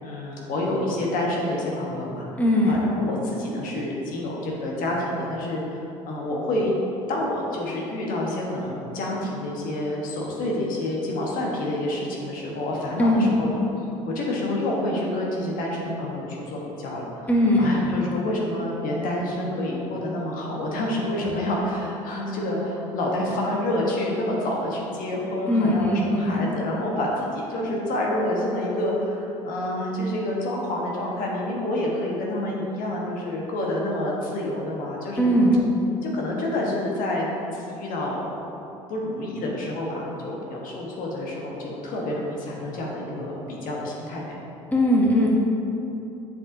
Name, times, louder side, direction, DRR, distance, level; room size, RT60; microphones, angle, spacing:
voice 1, 0.0-2.2 2.7-5.8 6.0-6.7 7.1-13.5 14.1-17.3 17.6-35.3 36.0-37.3 37.5-38.2 38.9-44.4, left 1 dB, 60° left, -3 dB, 1.2 m, -28 dB
voice 2, 2.3-2.8 13.0-13.4 17.3-17.9 25.5-26.5 35.2-35.6 44.7-45.3, equal, 10° left, -3 dB, 1.2 m, -20 dB
7.0 x 5.5 x 2.7 m, 2.9 s
hypercardioid pair, 70°, 16 cm